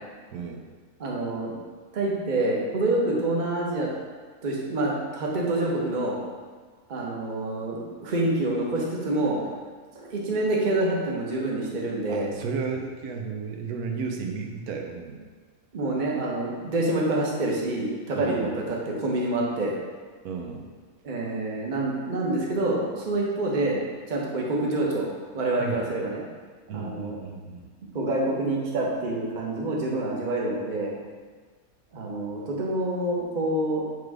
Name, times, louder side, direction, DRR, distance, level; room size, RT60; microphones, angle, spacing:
voice 1, 0.3-0.6 12.1-15.2 18.1-18.6 20.2-20.7 25.6-25.8 26.7-27.7, right 5 dB, 85° right, 3 dB, 1.2 m, -33 dB
voice 2, 1.0-1.5 1.9-3.9 4.4-6.2 6.9-9.4 9.9-12.3 15.7-19.7 21.0-23.8 24.1-25.1 25.3-26.2 26.7-27.2 27.9-30.9 31.9-34.0, right 2 dB, 35° right, -3 dB, 1.0 m, -27 dB
6.3 x 3.3 x 4.8 m, 1.5 s
omnidirectional pair, 1.5 m